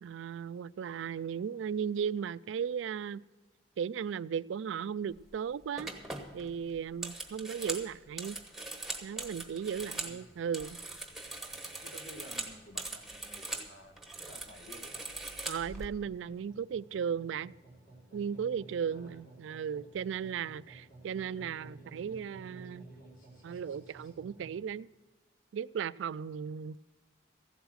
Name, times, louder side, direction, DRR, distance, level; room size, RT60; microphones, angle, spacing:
voice 1, 0.0-3.2 3.8-5.9 6.3-8.4 9.0-10.8 15.5-17.5 18.1-22.9 23.4-24.9 25.5-26.8, right 7 dB, 80° right, 0.3 m, -36 dB
sound 1, 5.1-5.4 5.8-10.2 10.4-13.7 14.0-15.9, right 2 dB, ahead, 1.0 m, -41 dB
sound 2, 9.5-24.6, right 2 dB, 55° left, 4.8 m, -56 dB
voice 2, 9.7-10.3 11.7-15.1 18.9-19.2 19.6-19.7, equal, 80° left, 1.6 m, -53 dB
15.0 x 8.1 x 6.3 m
head